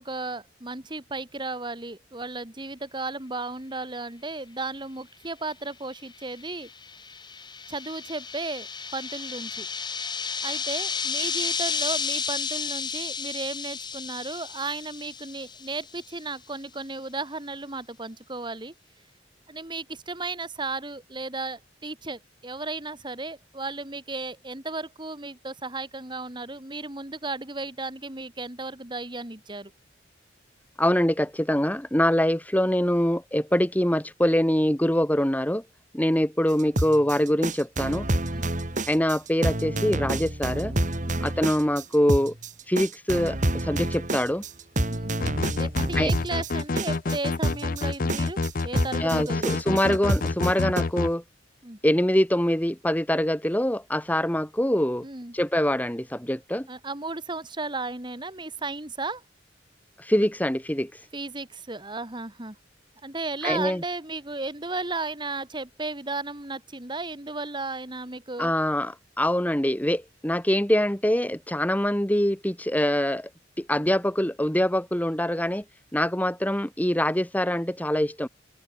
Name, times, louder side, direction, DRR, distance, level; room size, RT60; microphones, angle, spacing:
voice 1, 0.0-6.7 7.7-8.7 8.9-9.7 10.4-18.7 19.5-29.7 38.3-38.5 41.0-41.3 44.9-45.1 45.6-49.5 51.6-51.8 55.0-55.3 56.7-59.2 61.1-62.6 63.0-68.5, right 3 dB, 25° right, 2.7 m, -34 dB
sound 1, 6.2-16.0, left 6 dB, 25° left, 6.2 m, -32 dB
voice 2, 30.8-35.6 35.9-38.1 38.9-40.7 41.2-42.3 42.7-44.4 46.0-46.1 49.0-51.2 51.8-55.0 55.3-56.7 60.0-61.0 63.4-63.8 68.4-73.3 73.6-75.6 75.9-78.3, left 1 dB, 10° left, 1.9 m, -24 dB
sound 2, 36.6-50.8, right 1 dB, 40° right, 3.2 m, -28 dB
sound 3, 45.2-51.1, left 3 dB, 50° left, 0.6 m, -28 dB
open air
head